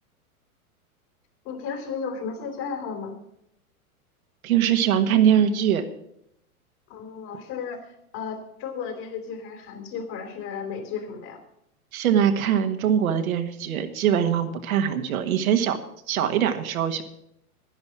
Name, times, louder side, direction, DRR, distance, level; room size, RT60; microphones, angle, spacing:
voice 1, 1.4-3.2 6.9-11.4, left 6 dB, 45° left, 4 dB, 3.8 m, -34 dB
voice 2, 4.4-5.8 11.9-15.8 16.1-17.0, right 9 dB, 70° right, 6 dB, 1.6 m, -22 dB
11.0 x 10.5 x 6.1 m, 0.77 s
hypercardioid pair, 110°, 44 cm